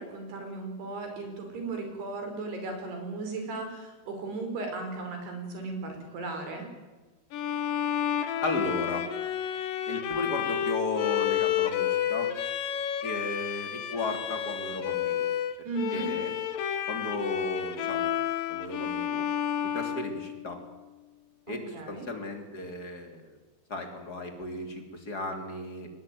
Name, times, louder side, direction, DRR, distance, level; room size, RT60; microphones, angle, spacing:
voice 1, 0.0-6.7 15.7-16.1 21.5-22.0, right 3 dB, 65° right, 4 dB, 7.2 m, -36 dB
Bowed string instrument, 7.3-20.8, left 10 dB, 65° left, 2.7 m, -30 dB
voice 2, 8.4-9.1 9.9-12.3 13.0-15.3 15.9-16.3 16.9-18.1 18.5-19.2 19.7-20.6 21.5-23.4 23.7-25.9, left 2 dB, 25° left, 4 dB, 2.9 m, -35 dB
22.5 x 20.0 x 9.5 m, 1.2 s
omnidirectional pair, 5.1 m